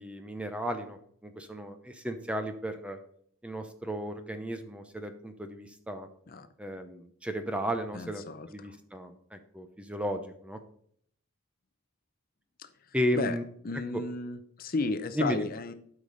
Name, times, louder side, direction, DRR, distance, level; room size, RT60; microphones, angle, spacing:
voice 1, 0.0-3.0 3.4-6.1 6.6-10.6 12.9-13.4 13.9-14.0 15.1-15.5, equal, 5° right, 7 dB, 0.7 m, -34 dB
voice 2, 7.9-8.7 12.6-12.7 13.1-13.4 13.6-15.7, left 3 dB, 40° left, 10 dB, 0.6 m, -34 dB
12.0 x 5.1 x 4.0 m, 0.64 s
head